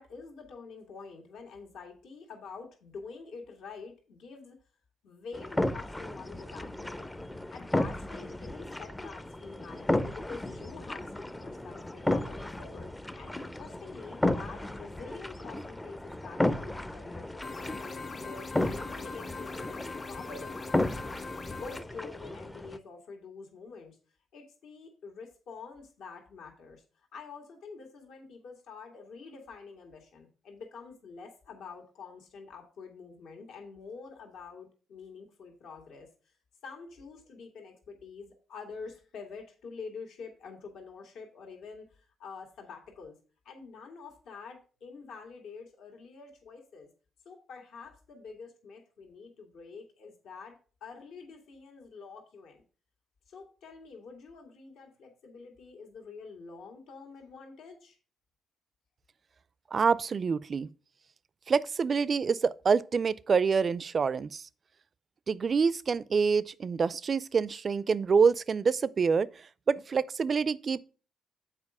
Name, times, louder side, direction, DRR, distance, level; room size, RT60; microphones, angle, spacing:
voice 1, 0.0-4.6 5.0-7.3 7.5-21.1 21.6-24.0 24.3-36.1 36.6-43.2 43.5-46.9 47.3-52.6 53.3-58.0, left 5 dB, 75° left, 2.0 m, -47 dB
sound 1, 5.3-22.8, left 1 dB, 10° left, 0.5 m, -34 dB
sound 2, 17.4-21.8, left 4 dB, 40° left, 1.5 m, -41 dB
voice 2, 59.7-60.7 61.5-64.4 65.3-69.3 69.7-70.8, right 5 dB, 40° right, 0.4 m, -26 dB
7.4 x 4.6 x 4.8 m
cardioid pair, 90°, 0 cm